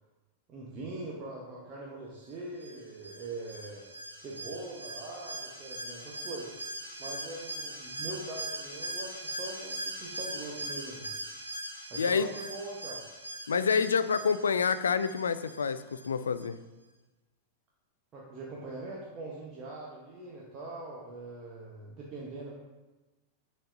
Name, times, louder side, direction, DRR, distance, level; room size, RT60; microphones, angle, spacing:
voice 1, 0.5-3.8 4.1-6.5 7.0-11.1 11.9-13.0 18.1-22.5, right 2 dB, 30° right, -4 dB, 1.1 m, -42 dB
Alarm, 2.6-16.1 16.4-16.5, right 2 dB, 85° right, 1.2 m, -41 dB
voice 2, 12.0-12.3 13.5-16.6, left 6 dB, 70° left, 13 dB, 0.3 m, -28 dB
9.8 x 4.1 x 2.7 m, 1.2 s
figure-of-eight pair, 90°, 0 cm